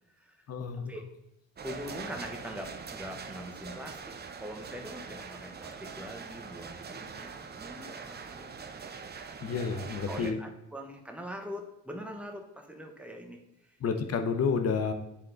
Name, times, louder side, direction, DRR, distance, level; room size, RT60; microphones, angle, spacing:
voice 1, 0.5-0.9 9.4-10.4 13.8-14.9, left 5 dB, 55° left, 7 dB, 1.0 m, -30 dB
voice 2, 1.6-8.6 10.1-13.8, equal, 5° right, 3 dB, 1.1 m, -43 dB
sound 1, 1.6-10.3, right 5 dB, 35° right, 0.7 m, -43 dB
10.0 x 3.7 x 3.9 m, 0.87 s
cardioid pair, 90°, 30 cm